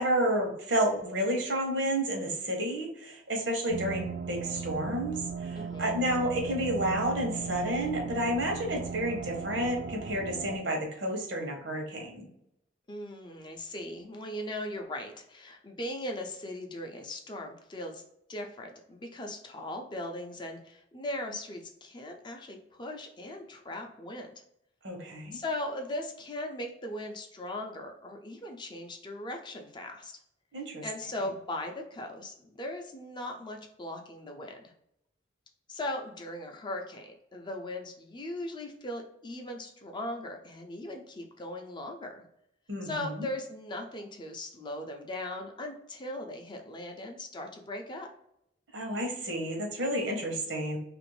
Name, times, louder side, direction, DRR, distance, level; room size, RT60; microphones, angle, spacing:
voice 1, 0.0-12.3 24.8-25.4 30.5-30.8 42.7-43.3 48.7-50.8, right 1 dB, 80° right, 1 dB, 1.0 m, -30 dB
sound 1, 3.7-10.6, right 5 dB, 60° right, 0.4 m, -37 dB
voice 2, 5.5-6.0 12.9-18.0 18.3-24.3 25.3-30.2 30.8-34.7 35.7-42.2 42.8-48.1, left 1 dB, 25° left, 3 dB, 0.4 m, -39 dB
2.9 x 2.5 x 3.1 m, 0.77 s
head